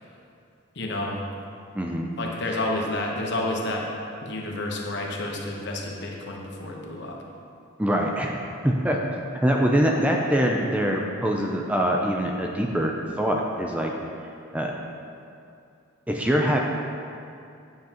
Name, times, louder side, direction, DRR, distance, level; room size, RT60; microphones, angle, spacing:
voice 1, 0.7-1.2 2.2-3.9 4.2-7.2, left 1 dB, 55° left, 0 dB, 1.0 m, -30 dB
voice 2, 1.8-2.1 7.8-8.4 8.6-9.0 9.4-13.9 14.5-14.7 16.1-16.6, equal, 5° right, 0 dB, 0.4 m, -23 dB
9.2 x 7.6 x 2.9 m, 2.5 s
head